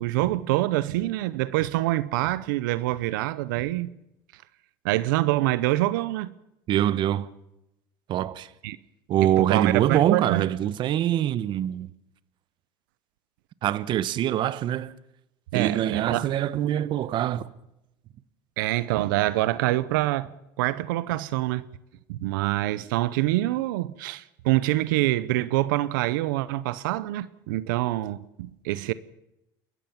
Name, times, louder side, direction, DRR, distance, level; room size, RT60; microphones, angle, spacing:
voice 1, 0.0-3.9 4.8-6.3 8.6-8.8 9.2-10.5 15.5-16.3 18.6-20.3 20.6-21.7 22.1-28.9, right 17 dB, 85° right, 0.8 m, -25 dB
voice 2, 6.7-7.3 8.1-8.5 9.1-11.9 13.6-14.9 15.5-17.5, right 11 dB, 50° right, 1.0 m, -24 dB
29.5 x 14.0 x 7.2 m
supercardioid pair, 115°, 11 cm